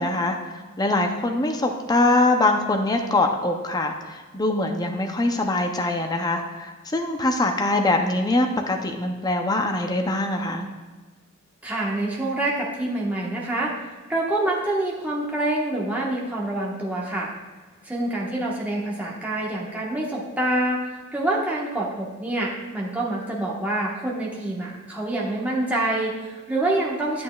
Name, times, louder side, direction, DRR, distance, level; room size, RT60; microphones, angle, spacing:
voice 1, 0.0-10.7, left 2 dB, 20° left, 4 dB, 0.5 m, -23 dB
voice 2, 11.6-13.8 14.1-17.3 17.8-27.2, right 1 dB, 5° right, -5 dB, 1.1 m, -26 dB
8.5 x 8.3 x 2.3 m, 1.3 s
head